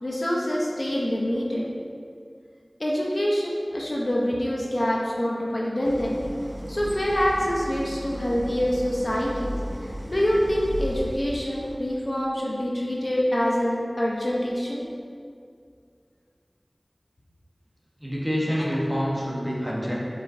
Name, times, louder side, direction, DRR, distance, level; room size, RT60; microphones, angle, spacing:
voice 1, 0.0-1.7 2.8-6.2 6.7-9.5 10.1-14.8 18.5-18.7, equal, 55° left, -4 dB, 0.6 m, -25 dB
Idling, 5.8-11.9, equal, 35° right, 0.4 m, -35 dB
voice 2, 18.0-20.0, equal, 5° right, -5 dB, 0.9 m, -27 dB
4.7 x 3.8 x 2.5 m, 2.2 s
wide cardioid pair, 45°, 0 cm